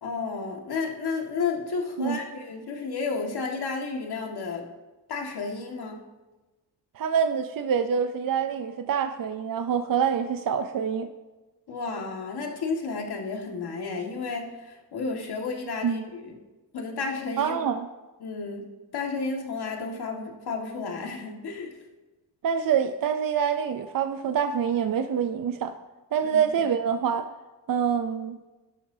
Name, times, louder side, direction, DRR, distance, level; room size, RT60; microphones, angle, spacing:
voice 1, 0.0-4.7 5.1-6.0 11.7-16.4 16.7-17.6 18.2-18.7 18.9-21.7 26.2-26.6, left 4 dB, 65° left, 1 dB, 2.0 m, -32 dB
voice 2, 7.0-11.1 15.8-16.0 17.4-17.9 22.4-25.8 26.1-27.3 27.7-28.4, right 7 dB, 50° right, 8 dB, 0.6 m, -26 dB
17.0 x 11.5 x 2.8 m, 1.2 s
cardioid pair, 110°, 42 cm